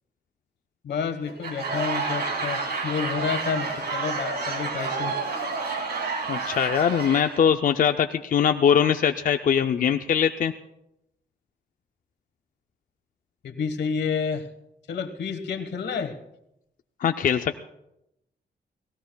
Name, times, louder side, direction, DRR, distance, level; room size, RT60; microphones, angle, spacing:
voice 1, 0.8-5.2 13.4-14.5 14.9-16.2, left 6 dB, 85° left, 7 dB, 1.3 m, -29 dB
Laughter / Crowd, 1.3-7.5, right 4 dB, 70° right, 2.6 m, -29 dB
voice 2, 6.3-10.5 17.0-17.6, left 8 dB, 55° left, 7 dB, 0.4 m, -22 dB
29.5 x 17.5 x 2.3 m, 0.84 s
wide cardioid pair, 180°, 17 cm